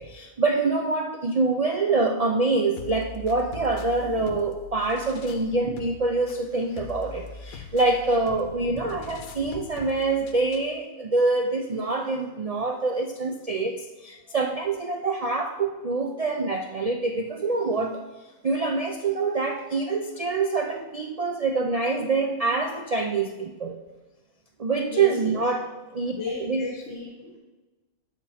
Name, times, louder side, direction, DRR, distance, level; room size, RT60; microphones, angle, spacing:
voice 1, 0.0-18.0 18.4-23.8 24.6-25.6 25.9-26.1 26.5-26.6, right 3 dB, 70° right, 3 dB, 0.3 m, -25 dB
sound 1, 2.8-10.8, left 5 dB, 80° left, 1.1 m, -42 dB
voice 2, 24.9-25.4 26.1-27.4, left 3 dB, 55° left, 0 dB, 1.4 m, -34 dB
12.5 x 4.4 x 4.2 m, 1.2 s
omnidirectional pair, 1.4 m